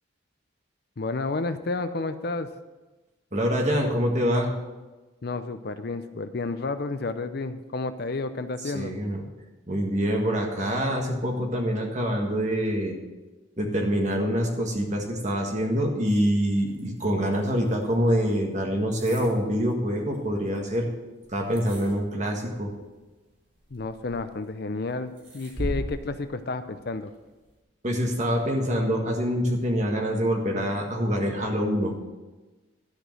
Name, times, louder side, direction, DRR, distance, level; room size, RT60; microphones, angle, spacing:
voice 1, 1.0-2.5 5.2-8.9 23.7-27.1, left 3 dB, 50° left, 10 dB, 0.5 m, -31 dB
voice 2, 3.3-4.6 8.6-9.2 9.7-13.0 13.6-20.9 21.3-22.7 27.8-32.0, equal, 35° right, 1 dB, 1.7 m, -25 dB
sound 1, 16.2-27.6, equal, 65° right, 4.0 m, -42 dB
12.5 x 5.0 x 7.7 m, 1.2 s
head